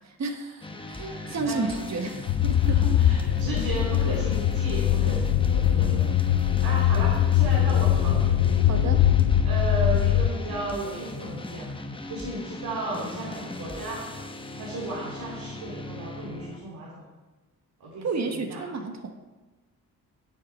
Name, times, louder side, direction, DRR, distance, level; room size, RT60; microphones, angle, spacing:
voice 1, 0.1-2.8 6.2-6.6 8.6-9.0 18.0-19.2, right 4 dB, 50° right, 6 dB, 1.3 m, -32 dB
sound 1, 0.6-16.6, left 2 dB, 15° left, 0.9 m, -38 dB
voice 2, 0.8-1.7 2.5-6.3 6.6-8.4 9.4-11.7 12.1-14.0 14.5-17.0 17.8-18.1 18.3-18.6, right 2 dB, 85° right, -5 dB, 2.7 m, -34 dB
sound 2, 2.3-10.3, left 11 dB, 70° left, 0.6 m, -22 dB
10.5 x 7.3 x 4.5 m, 1.2 s
cardioid pair, 95°, 35 cm